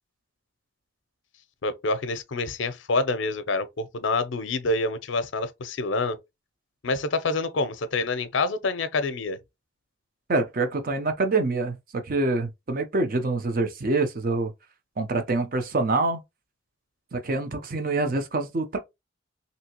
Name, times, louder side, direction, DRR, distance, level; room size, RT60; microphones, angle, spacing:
voice 1, 1.6-6.2 6.8-9.4, left 3 dB, 70° left, 0.6 m, -27 dB
voice 2, 10.3-14.5 15.0-16.2 17.1-18.8, right 3 dB, 45° right, 0.6 m, -26 dB
3.3 x 2.8 x 2.8 m
head